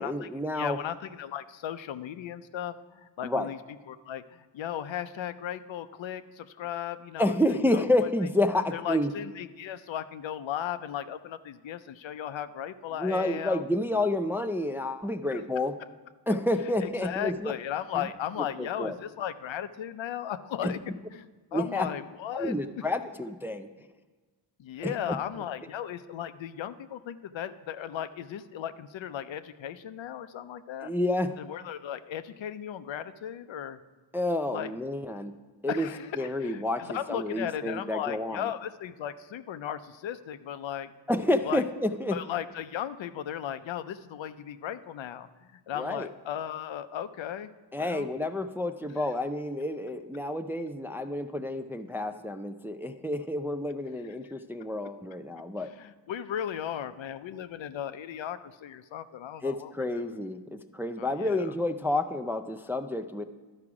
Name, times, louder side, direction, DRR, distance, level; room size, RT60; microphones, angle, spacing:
voice 1, 0.0-0.8 3.2-3.5 7.2-9.1 13.0-15.7 16.3-17.5 17.9-18.0 18.6-18.9 20.6-20.7 21.5-21.9 22.3-23.7 24.8-25.0 30.8-31.4 34.1-35.3 35.6-35.9 36.2-38.5 41.1-42.2 45.7-46.1 47.7-55.7 59.4-63.3, left 1 dB, 5° right, 7 dB, 0.3 m, -29 dB
voice 2, 0.5-3.6 3.9-7.8 8.7-13.6 15.3-15.4 16.8-20.8 21.1-22.5 24.6-30.9 31.4-33.8 34.5-34.7 35.7-40.9 41.4-41.6 42.1-47.5 47.8-48.1 49.0-49.1 55.6-60.1 61.0-61.5, left 10 dB, 75° left, 12 dB, 0.5 m, -36 dB
11.5 x 4.9 x 4.8 m, 1.3 s
cardioid pair, 60°, 46 cm